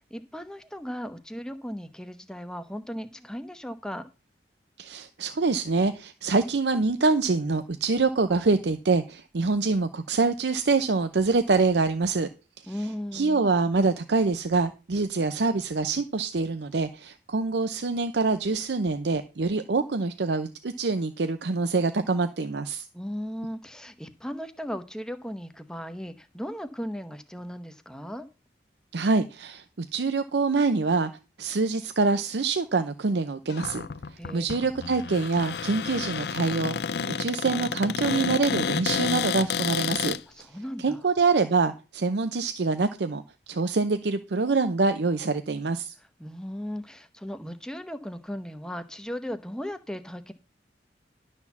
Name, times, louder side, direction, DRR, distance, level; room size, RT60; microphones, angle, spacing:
voice 1, 0.0-4.1 12.7-13.5 22.9-28.3 34.2-34.4 40.4-41.0 46.2-50.3, equal, 5° left, 9 dB, 0.8 m, -36 dB
voice 2, 4.8-12.3 12.6-12.7 13.1-22.9 28.9-29.6 29.9-31.1 31.4-33.9 34.3-40.5 40.8-45.9, right 3 dB, 75° right, 9 dB, 0.6 m, -25 dB
Cupboard open or close, 33.5-40.2, left 6 dB, 65° left, 0.5 m, -30 dB
11.5 x 4.3 x 7.1 m, 0.31 s
head